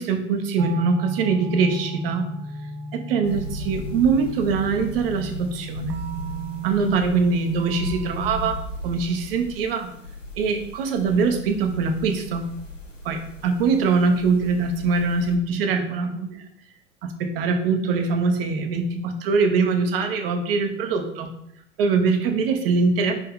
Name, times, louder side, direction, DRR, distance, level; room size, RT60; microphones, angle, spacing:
voice 1, 0.0-2.3 2.9-6.0 6.6-9.9 10.4-12.5 13.0-16.4 17.0-21.3 21.8-23.1, right 4 dB, 50° right, 6 dB, 1.2 m, -23 dB
sound 1, 0.6-8.5, right 3 dB, 30° right, 0.5 m, -35 dB
sound 2, 3.2-15.4, left 1 dB, 90° left, 1.4 m, -37 dB
9.6 x 3.5 x 3.7 m, 0.75 s
figure-of-eight pair, 90°, 37 cm